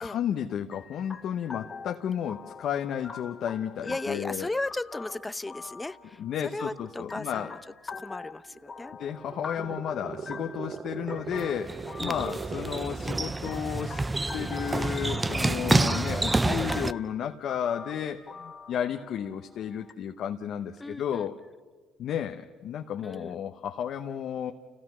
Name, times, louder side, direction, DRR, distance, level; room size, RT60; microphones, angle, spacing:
voice 1, 0.0-4.5 6.2-7.5 9.0-14.0 14.3-21.4 22.0-24.5, left 9 dB, 65° left, 4 dB, 1.0 m, -33 dB
sound 1, 0.7-19.9, left 5 dB, 30° left, 1.7 m, -45 dB
voice 2, 3.8-7.6 7.9-9.0 9.6-9.8 12.0-12.1 20.8-21.3 23.0-23.4, left 2 dB, 15° left, 15 dB, 0.7 m, -36 dB
sound 2, 8.5-13.5, right 6 dB, 50° right, 1.0 m, -40 dB
sound 3, 11.3-16.9, right 2 dB, 20° right, 0.5 m, -28 dB
29.5 x 16.5 x 6.2 m, 1.5 s
supercardioid pair, 75°, 0 cm